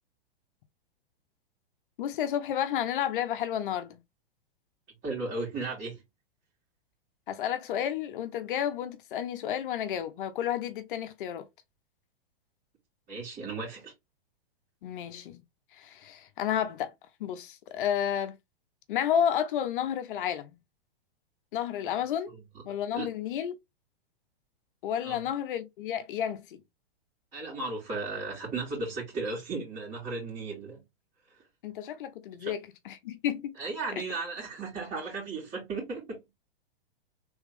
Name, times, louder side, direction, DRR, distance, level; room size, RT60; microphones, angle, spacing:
voice 1, 2.0-4.0 7.3-11.5 14.8-15.4 15.7-16.9 17.2-18.4 18.9-20.6 21.5-22.3 22.6-23.6 24.8-26.6 31.6-32.6 32.8-33.6, left 9 dB, 60° left, 0.8 m, -31 dB
voice 2, 5.0-6.0 13.1-13.9 22.3-22.4 22.9-23.1 25.0-25.2 27.3-30.8 32.4-32.5 33.6-36.2, right 3 dB, 25° right, 2.5 m, -35 dB
3.5 x 3.3 x 3.2 m
hypercardioid pair, 125°, 30 cm